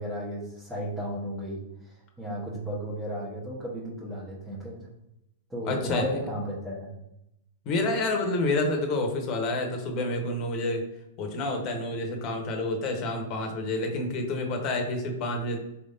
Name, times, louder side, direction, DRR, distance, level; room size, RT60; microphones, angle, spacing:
voice 1, 0.0-1.6 1.8-4.9 5.5-6.9, equal, 10° right, -8 dB, 1.3 m, -34 dB
voice 2, 5.6-6.1 7.6-10.8 11.2-15.6, left 2 dB, 40° left, 3 dB, 1.1 m, -28 dB
4.4 x 3.4 x 2.7 m, 0.84 s
hypercardioid pair, 110°, 0 cm